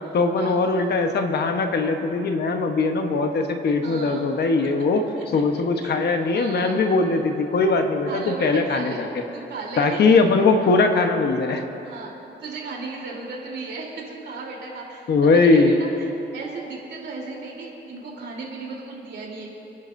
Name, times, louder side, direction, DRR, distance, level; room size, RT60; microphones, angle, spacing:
voice 1, 0.1-5.0 5.3-9.1 9.8-11.6 15.1-15.8, left 3 dB, 60° left, 5 dB, 1.1 m, -20 dB
voice 2, 3.8-4.2 5.2-5.4 5.8-5.9 6.3-6.8 8.1-10.2 11.8-16.1 16.3-19.5, right 3 dB, 75° right, -3 dB, 3.5 m, -35 dB
29.5 x 11.0 x 2.6 m, 3.0 s
wide cardioid pair, 140°, 19 cm